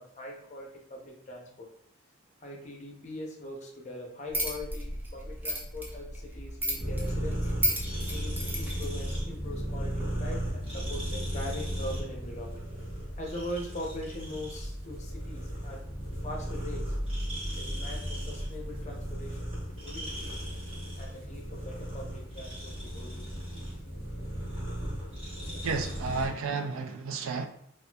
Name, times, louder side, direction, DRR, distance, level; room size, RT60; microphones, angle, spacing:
voice 1, 0.0-1.7 2.4-7.5 8.1-12.6 13.2-15.8 16.2-17.0 17.6-20.5 21.0-23.6 25.5-25.6, left 1 dB, 35° left, 0.6 m, -41 dB
sound 1, 4.3-8.8, equal, 10° right, 0.4 m, -34 dB
sound 2, 6.8-26.3, equal, 30° right, 1.1 m, -35 dB
voice 2, 25.6-27.5, right 4 dB, 85° right, 0.4 m, -32 dB
4.1 x 2.5 x 2.3 m
head